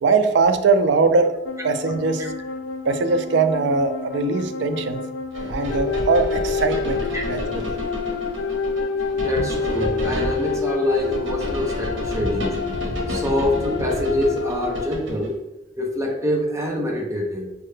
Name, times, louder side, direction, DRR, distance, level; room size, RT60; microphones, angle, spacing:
voice 1, 0.0-1.3 1.6-2.2 2.8-5.0 5.5-7.8, right 4 dB, 65° right, 8 dB, 0.4 m, -21 dB
sound 1, 1.4-14.9, left 5 dB, 85° left, 0.3 m, -28 dB
sound 2, 5.3-15.3, equal, 85° right, 0.8 m, -30 dB
voice 2, 9.2-12.6 13.1-15.4 15.8-17.5, left 1 dB, 15° right, -1 dB, 0.5 m, -25 dB
4.6 x 2.1 x 3.1 m, 0.98 s
head